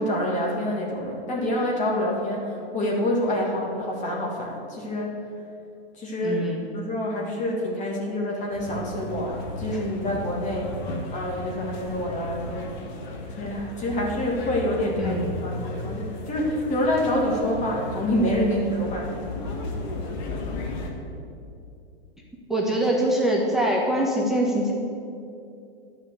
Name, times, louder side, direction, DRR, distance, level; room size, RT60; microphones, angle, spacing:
voice 1, 0.0-5.1 6.0-6.4 6.7-10.7 11.1-12.8 13.4-19.5, left 1 dB, 25° left, -2 dB, 2.0 m, -27 dB
voice 2, 6.2-6.6 9.7-9.8 15.0-15.3 22.5-24.7, right 1 dB, ahead, -3 dB, 1.4 m, -24 dB
sound 1, 8.5-20.9, left 2 dB, 45° left, 1.8 m, -34 dB
11.0 x 5.7 x 8.1 m, 2.6 s
hypercardioid pair, 125°, 32 cm